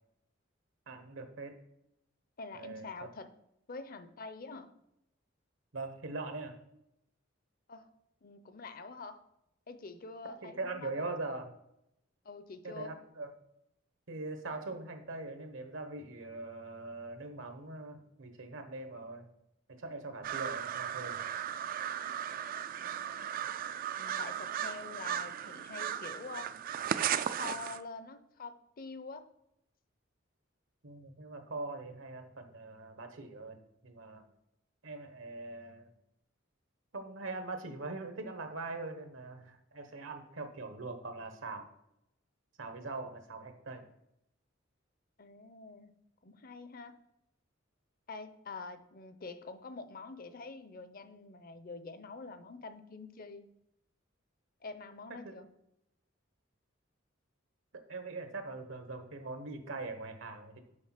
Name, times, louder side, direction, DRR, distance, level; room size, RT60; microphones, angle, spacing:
voice 1, 0.9-1.6 2.5-2.8 5.7-6.6 10.4-11.5 12.6-13.3 14.1-19.3 19.7-21.2 30.8-33.6 33.8-34.2 34.8-35.9 36.9-41.7 42.6-43.8 57.7-60.6, right 3 dB, 80° right, 7 dB, 1.1 m, -42 dB
voice 2, 2.4-3.3 3.7-4.7 7.7-7.9 8.2-9.2 9.7-11.2 12.2-13.0 22.8-23.4 24.0-26.5 27.4-29.3 45.2-45.9 46.2-47.0 48.1-53.5 54.6-55.5, left 4 dB, 45° left, 10 dB, 0.6 m, -46 dB
sound 1, 20.2-27.8, right 9 dB, 45° right, 0.3 m, -36 dB
6.5 x 5.0 x 5.8 m, 0.82 s
head